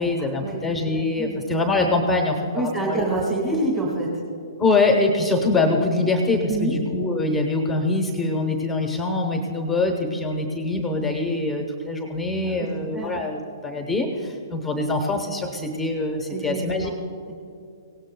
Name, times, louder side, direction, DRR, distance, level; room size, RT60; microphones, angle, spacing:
voice 1, 0.0-3.1 4.6-16.9, left 2 dB, 5° left, 3 dB, 0.8 m, -24 dB
voice 2, 1.0-1.4 2.5-4.1 6.5-6.7 12.4-12.7 12.9-13.1 16.3-16.9, right 2 dB, 15° right, -4 dB, 1.7 m, -27 dB
23.5 x 17.5 x 2.2 m, 2.6 s
hypercardioid pair, 170°, 3 cm